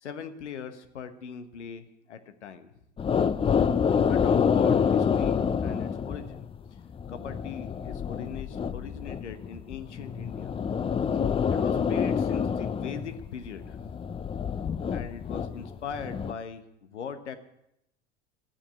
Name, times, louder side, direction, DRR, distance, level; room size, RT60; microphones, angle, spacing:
voice 1, 0.0-2.7 4.1-6.4 7.1-10.6 11.5-13.8 14.9-17.4, left 7 dB, 75° left, 10 dB, 1.3 m, -40 dB
sound 1, 3.0-16.3, left 7 dB, 15° left, 0.5 m, -27 dB
13.0 x 9.9 x 9.0 m, 0.80 s
figure-of-eight pair, 70°, 35 cm